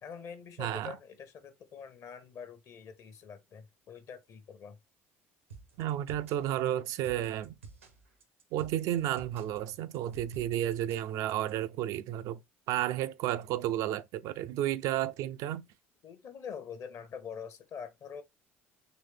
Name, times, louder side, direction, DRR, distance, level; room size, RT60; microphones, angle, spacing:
voice 1, 0.0-4.8 16.0-18.2, left 6 dB, 50° left, 0.9 m, -45 dB
voice 2, 0.6-1.0 5.8-7.6 8.5-12.4 12.7-15.7, right 12 dB, 55° right, 0.3 m, -32 dB
sound 1, 5.5-11.5, right 5 dB, 85° right, 0.8 m, -51 dB
3.9 x 3.2 x 3.3 m
figure-of-eight pair, 60°, 7 cm